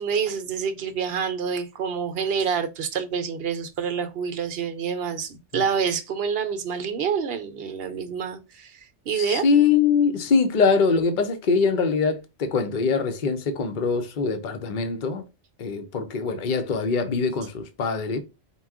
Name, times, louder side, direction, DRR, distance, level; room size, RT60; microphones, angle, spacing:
voice 1, 0.0-9.4, right 6 dB, 60° right, 0.8 m, -27 dB
voice 2, 9.1-15.3 15.6-18.2, left 5 dB, 50° left, 0.7 m, -23 dB
4.3 x 2.3 x 3.5 m
omnidirectional pair, 1.2 m